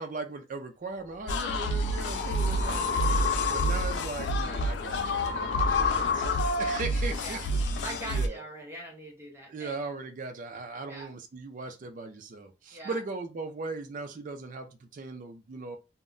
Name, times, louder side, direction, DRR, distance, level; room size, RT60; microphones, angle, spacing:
voice 1, 0.0-6.2 6.6-8.4 9.5-15.8, right 3 dB, 50° right, 0.4 m, -39 dB
sound 1, 1.1-6.9, left 5 dB, 60° left, 0.8 m, -31 dB
sound 2, 1.3-8.3, equal, 85° left, 0.4 m, -29 dB
voice 2, 2.5-2.9 6.5-6.8 7.2-7.4 7.8-9.7 10.8-11.1 12.7-13.0, right 1 dB, 15° right, 0.7 m, -42 dB
2.1 x 2.0 x 3.6 m
head